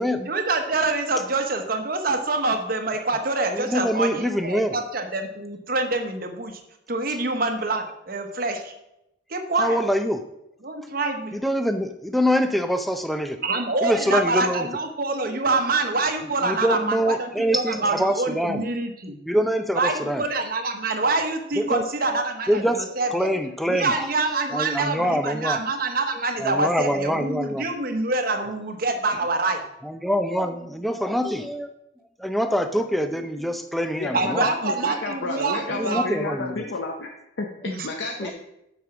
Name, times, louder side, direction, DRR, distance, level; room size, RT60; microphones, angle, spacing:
voice 1, 0.3-6.6 6.9-8.7 9.3-9.8 10.6-11.4 13.4-19.2 19.7-22.6 23.0-23.3 23.7-29.6 34.1-36.1 37.6-37.9, right 3 dB, 45° right, 5 dB, 1.0 m, -26 dB
voice 2, 3.5-4.8 9.6-10.2 11.3-13.4 13.8-14.7 15.3-15.5 16.4-18.6 19.3-20.2 21.6-21.8 22.1-24.1 24.4-25.6 26.4-27.7 29.8-31.7 32.2-34.5 35.8-36.6 38.2-38.3, equal, ahead, 7 dB, 0.4 m, -25 dB
voice 3, 34.0-37.1 37.4-38.3, left 3 dB, 60° left, 1 dB, 0.8 m, -31 dB
7.5 x 5.4 x 6.1 m, 0.86 s
head